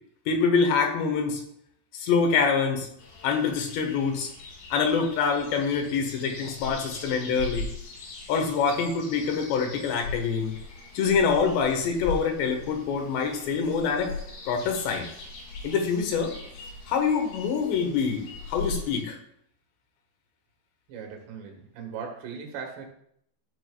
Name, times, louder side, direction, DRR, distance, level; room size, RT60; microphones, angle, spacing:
voice 1, 0.3-1.4 1.9-2.9 3.2-4.3 4.7-7.7 8.3-10.5 11.0-14.1 14.5-15.1 15.6-16.3 16.9-19.2, left 5 dB, 90° left, 3 dB, 3.6 m, -25 dB
sound 1, 3.0-19.0, left 3 dB, 65° left, 3.3 m, -40 dB
voice 2, 20.9-22.9, right 6 dB, 85° right, 2 dB, 3.8 m, -38 dB
13.0 x 8.8 x 2.3 m, 0.69 s
omnidirectional pair, 4.8 m